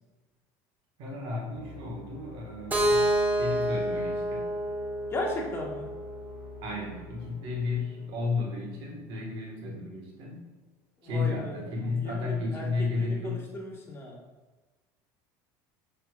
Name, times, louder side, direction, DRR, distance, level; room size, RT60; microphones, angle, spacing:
voice 1, 1.0-3.1 3.4-4.5 6.6-10.5 11.0-13.4, left 3 dB, 65° right, -1 dB, 1.7 m, -33 dB
sound 1, 1.5-9.1, left 7 dB, 80° left, 0.8 m, -48 dB
Keyboard (musical), 2.7-6.6, right 1 dB, 15° right, 1.2 m, -28 dB
voice 2, 5.1-5.9 11.0-14.2, left 1 dB, 25° left, -1 dB, 1.4 m, -36 dB
6.5 x 5.9 x 2.5 m, 1.2 s
supercardioid pair, 105°, 10 cm